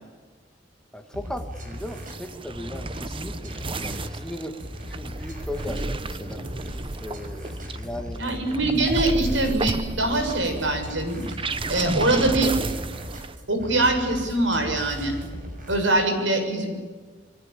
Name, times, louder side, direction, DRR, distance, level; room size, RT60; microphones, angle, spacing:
voice 1, 0.9-6.4 7.0-8.2, left 1 dB, 5° left, 6 dB, 1.9 m, -37 dB
sound 1, 1.1-15.9, equal, 45° right, 6.4 m, -38 dB
sound 2, 1.7-13.4, right 2 dB, 30° right, 1.0 m, -32 dB
voice 2, 8.2-11.2 11.7-12.5 13.5-15.2 15.7-16.7, right 2 dB, 80° right, 6 dB, 6.9 m, -23 dB
29.0 x 22.0 x 8.7 m, 1.5 s
head